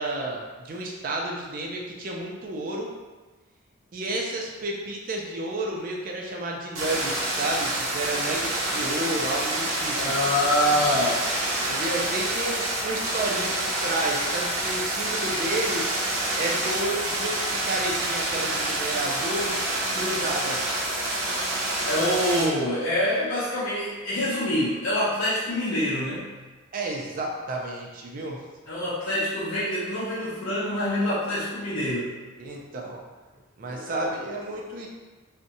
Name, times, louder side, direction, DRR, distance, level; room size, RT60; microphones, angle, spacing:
voice 1, 0.0-2.9 3.9-10.1 11.6-15.9 16.4-19.5 19.9-20.7 26.7-28.4 32.4-33.0 33.6-34.9, right 1 dB, 40° right, -1 dB, 0.4 m, -31 dB
sound 1, 6.8-22.5, right 1 dB, 80° right, 0.6 m, -27 dB
voice 2, 9.9-11.2 21.8-26.3 28.7-32.1 33.7-34.1, left 1 dB, 70° left, -9 dB, 0.5 m, -26 dB
2.6 x 2.1 x 2.6 m, 1.3 s
head